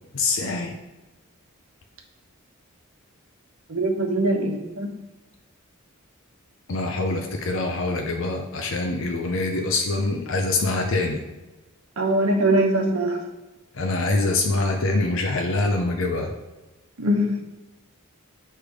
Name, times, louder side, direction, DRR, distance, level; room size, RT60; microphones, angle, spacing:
voice 1, 0.1-0.7 6.7-11.2 13.7-16.3, left 2 dB, 65° left, 2 dB, 0.6 m, -24 dB
voice 2, 3.7-4.9 12.0-13.2 17.0-17.4, right 1 dB, 90° right, 2 dB, 1.0 m, -22 dB
8.5 x 3.3 x 4.9 m, 1.1 s
head